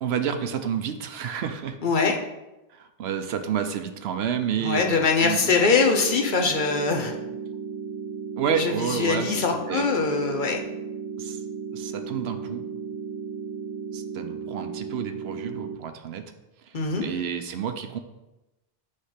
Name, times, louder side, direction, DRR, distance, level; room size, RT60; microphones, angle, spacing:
voice 1, 0.0-1.8 2.7-5.7 8.4-9.8 11.2-11.4 11.7-12.6 13.9-16.3 16.6-18.0, right 8 dB, 85° right, 8 dB, 0.9 m, -30 dB
voice 2, 1.8-2.2 4.6-7.1 8.6-10.6 16.7-17.1, left 4 dB, 55° left, 3 dB, 0.9 m, -23 dB
sound 1, 5.7-15.8, right 6 dB, 40° right, 0.4 m, -35 dB
6.4 x 3.3 x 5.7 m, 0.98 s
omnidirectional pair, 1.0 m